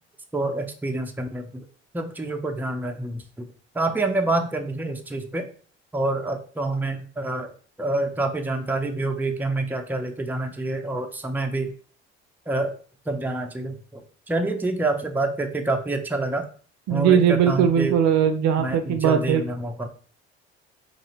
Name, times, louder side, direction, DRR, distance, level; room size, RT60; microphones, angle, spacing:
voice 1, 0.3-1.7 1.9-3.5 3.7-5.5 5.9-7.5 7.8-11.7 12.5-12.7 13.1-16.5 16.9-18.0 18.6-19.9, right 2 dB, 5° right, 4 dB, 0.6 m, -27 dB
voice 2, 16.9-19.4, right 8 dB, 60° right, 8 dB, 0.6 m, -20 dB
3.0 x 2.8 x 4.0 m, 0.42 s
hypercardioid pair, 60°, 31 cm